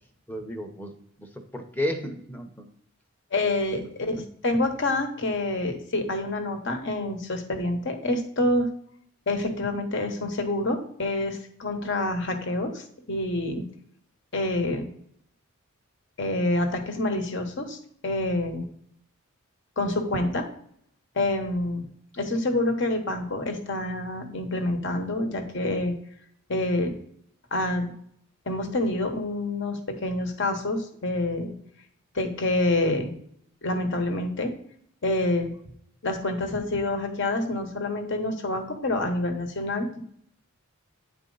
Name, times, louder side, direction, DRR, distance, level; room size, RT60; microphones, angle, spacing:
voice 1, 0.3-2.7 4.0-4.1, left 1 dB, 10° left, 5 dB, 0.8 m, -33 dB
voice 2, 3.3-8.7 9.3-13.7 14.3-14.9 16.2-17.8 18.0-18.7 19.8-20.5 21.1-21.9 22.1-25.9 26.5-26.9 27.5-27.9 28.5-31.5 32.1-33.1 33.6-34.5 35.0-35.5 36.0-40.0, left 2 dB, 55° left, 5 dB, 1.1 m, -27 dB
9.5 x 4.3 x 3.9 m, 0.68 s
head